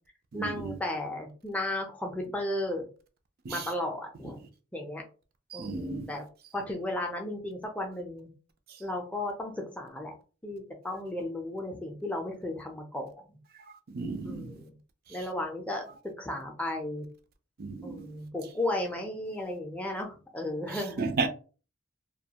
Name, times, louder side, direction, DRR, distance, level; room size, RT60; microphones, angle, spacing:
voice 1, 0.3-2.9 3.5-4.4 4.7-5.0 5.5-6.2 6.5-8.3 8.8-10.1 10.4-13.4 14.2-14.7 15.1-15.8 16.2-17.1 17.8-21.0, left 1 dB, 5° left, 0.5 m, -34 dB
voice 2, 5.5-6.1 13.9-14.5 17.6-18.1 21.0-21.3, right 4 dB, 50° right, 0.4 m, -33 dB
2.3 x 2.2 x 2.8 m
head